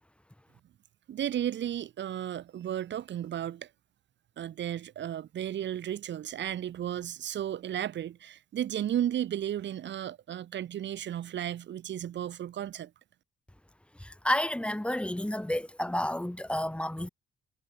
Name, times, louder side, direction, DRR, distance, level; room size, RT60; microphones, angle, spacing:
voice 1, 1.1-3.7 4.4-12.9, right 11 dB, 65° right, 1.8 m, -34 dB
voice 2, 14.0-17.1, left 1 dB, 5° left, 3.1 m, -30 dB
cardioid pair, 90°, 20 cm